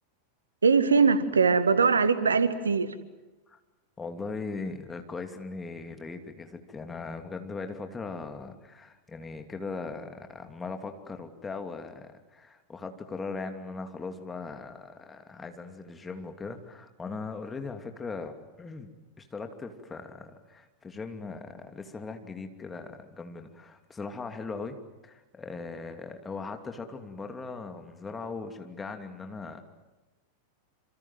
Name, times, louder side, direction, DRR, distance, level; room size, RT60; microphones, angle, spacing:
voice 1, 0.6-2.9, right 5 dB, 75° right, 13 dB, 1.8 m, -22 dB
voice 2, 4.0-18.9 19.2-24.8 25.0-29.6, left 4 dB, 15° left, 6 dB, 2.8 m, -39 dB
28.0 x 26.5 x 7.7 m, 1.1 s
figure-of-eight pair, 90°, 0 cm